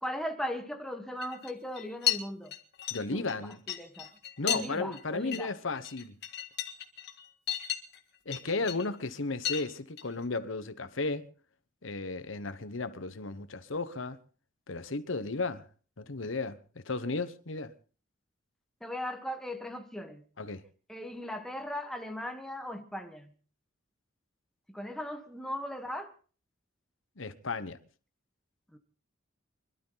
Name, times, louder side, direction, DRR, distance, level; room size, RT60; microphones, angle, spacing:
voice 1, 0.0-2.5 3.0-3.3 3.7-4.1 4.4-5.5 18.8-20.2 20.9-23.3 24.7-26.1 28.7-28.8, left 1 dB, ahead, 1.4 m, -38 dB
sound 1, 1.2-1.5 1.8-2.2 2.5-4.6 4.9-5.0 5.3-5.4 5.8-8.0 8.3-8.8 9.4-9.7 10.0-10.2, left 10 dB, 55° left, 1.9 m, -34 dB
voice 2, 2.9-3.6 4.4-6.1 8.3-11.3 11.8-14.2 14.7-15.6 16.0-16.6 16.8-17.7 20.4-20.6 27.2-27.8, left 3 dB, 80° left, 1.1 m, -34 dB
25.5 x 12.5 x 4.0 m
head